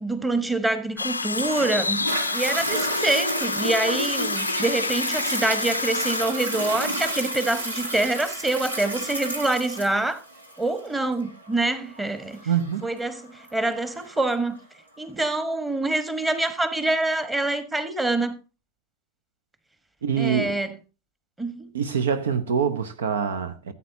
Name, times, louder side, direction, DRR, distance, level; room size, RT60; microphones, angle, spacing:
voice 1, 0.0-2.0 2.3-10.2 10.6-12.4 12.8-14.6 15.0-18.3 20.2-20.7 21.4-21.7, right 2 dB, 10° right, 1.4 m, -26 dB
sound 1, 1.0-6.2, left 3 dB, 80° left, 0.5 m, -29 dB
Toilet flush, 1.3-14.3 14.9-15.0, right 1 dB, 80° right, 2.1 m, -31 dB
voice 2, 12.5-12.9 20.0-20.6 21.7-23.7, right 7 dB, 60° right, 0.8 m, -25 dB
15.0 x 8.5 x 2.8 m
figure-of-eight pair, 90°, 0 cm